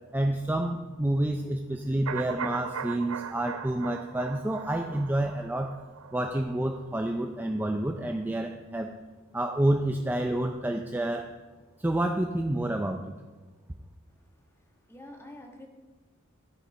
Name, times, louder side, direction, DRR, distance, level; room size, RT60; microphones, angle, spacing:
voice 1, 0.1-5.7 6.1-8.9 9.3-11.3 11.8-13.1, right 1 dB, 10° right, 4 dB, 0.4 m, -29 dB
sound 1, 2.1-7.9 8.2-8.3, right 7 dB, 75° right, 0.5 m, -40 dB
voice 2, 14.1-15.7, left 1 dB, 10° left, 2 dB, 1.4 m, -49 dB
13.0 x 6.5 x 5.3 m, 1.3 s
head